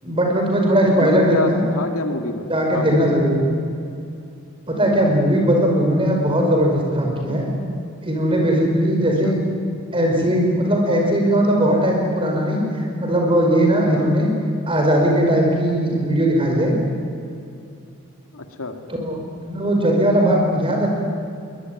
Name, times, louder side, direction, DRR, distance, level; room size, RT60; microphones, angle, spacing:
voice 1, 0.0-1.6 2.5-3.3 4.7-7.5 8.0-9.4 9.9-14.3 14.7-16.8 18.9-19.2 19.4-20.9, equal, 25° right, 1 dB, 5.4 m, -18 dB
voice 2, 1.0-3.6 4.9-5.1 9.2-9.3 13.8-14.1 18.3-18.8, left 2 dB, 85° left, 5 dB, 2.5 m, -28 dB
23.0 x 20.5 x 9.6 m, 2.5 s
head